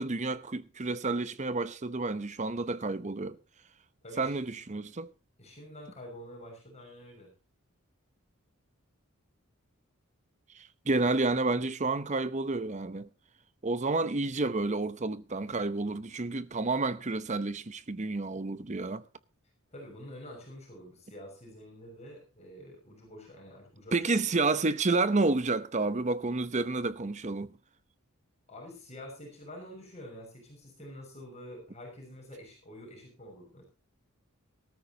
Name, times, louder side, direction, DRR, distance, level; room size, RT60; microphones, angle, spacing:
voice 1, 0.0-3.4 4.2-5.1 10.6-13.1 13.6-19.0 23.9-27.5, right 3 dB, 35° right, 0.8 m, -30 dB
voice 2, 4.0-4.4 5.4-7.3 19.7-24.0 28.5-33.6, equal, 30° left, 6.0 m, -47 dB
19.0 x 13.5 x 2.8 m
head